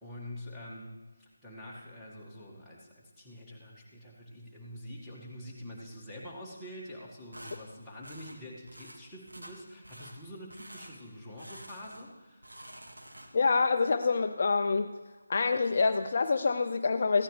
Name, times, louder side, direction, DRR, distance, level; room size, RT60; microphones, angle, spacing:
voice 1, 0.0-12.5, left 1 dB, ahead, -10 dB, 1.8 m, -46 dB
sound 1, 7.3-7.6 8.0-8.4 8.7-9.0 9.3-9.6 9.8-10.2 10.5-10.9 11.4-12.1 12.4-13.5, right 1 dB, 85° right, 1.8 m, -48 dB
voice 2, 13.3-14.9 15.3-17.2, left 4 dB, 45° left, 7 dB, 0.5 m, -26 dB
15.0 x 10.0 x 3.3 m, 1.3 s
figure-of-eight pair, 165°, 0 cm